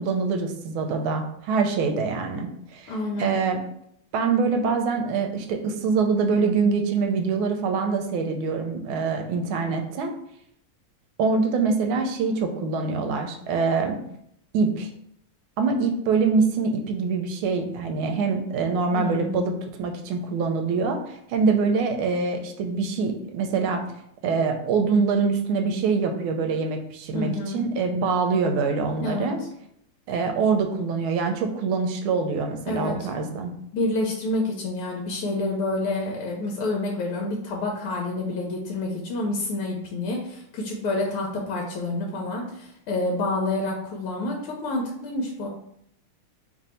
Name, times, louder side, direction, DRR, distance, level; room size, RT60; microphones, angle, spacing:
voice 1, 0.0-3.6 4.1-10.1 11.2-14.0 14.5-14.9 15.6-19.5 19.8-23.8 24.2-29.4 30.1-33.5, right 4 dB, 80° right, 4 dB, 1.4 m, -24 dB
voice 2, 2.9-3.4 18.9-19.6 27.1-27.7 29.0-29.3 32.7-33.1 33.7-45.5, left 2 dB, 80° left, -1 dB, 1.5 m, -28 dB
3.4 x 2.6 x 4.2 m, 0.71 s
omnidirectional pair, 2.4 m